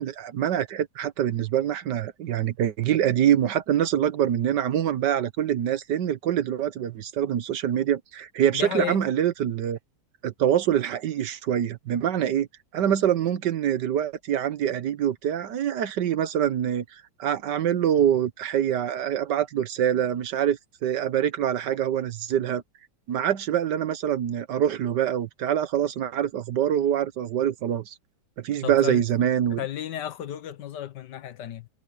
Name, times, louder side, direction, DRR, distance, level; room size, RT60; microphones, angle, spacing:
voice 1, 0.0-9.8 10.2-12.5 12.7-22.6 23.1-27.9 28.4-29.6, right 10 dB, 75° right, 1.6 m, -25 dB
voice 2, 8.5-9.0 28.6-29.0 29.6-31.7, left 11 dB, 75° left, 1.6 m, -33 dB
omnidirectional pair, 1.9 m